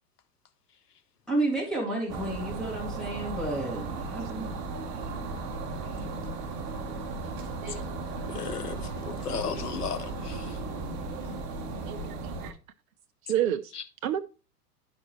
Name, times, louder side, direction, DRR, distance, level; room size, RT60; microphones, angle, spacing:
voice 1, 1.3-4.6, right 2 dB, ahead, 2.1 m, -31 dB
sound 1, 2.1-12.5, right 4 dB, 35° right, 1.0 m, -36 dB
sound 2, 3.8-12.1, left 5 dB, 25° left, 2.3 m, -46 dB
voice 2, 8.3-10.6 13.7-13.8, left 6 dB, 75° left, 1.0 m, -35 dB
voice 3, 13.2-13.7 14.0-14.2, right 11 dB, 65° right, 0.6 m, -29 dB
10.5 x 5.1 x 3.1 m
figure-of-eight pair, 95°, 47 cm